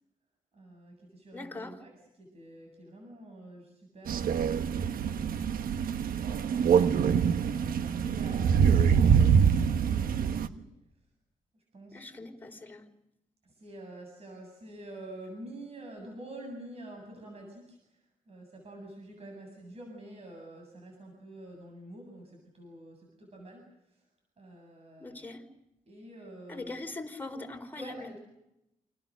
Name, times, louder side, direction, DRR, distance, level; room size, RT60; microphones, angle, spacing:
voice 1, 0.5-1.9 2.2-4.2 5.1-6.0 7.4-10.7 11.7-12.3 13.4-18.0 18.3-24.0 24.4-25.2 25.9-26.9 27.8-28.2, right 1 dB, 45° right, 2 dB, 7.9 m, -47 dB
voice 2, 1.3-1.8 11.9-12.9 25.0-25.4 26.5-28.1, left 2 dB, 15° left, 3 dB, 4.4 m, -41 dB
Crow, 4.1-10.5, right 7 dB, 80° right, 1.2 m, -25 dB
29.0 x 27.5 x 6.6 m, 0.87 s
cardioid pair, 100°, 15 cm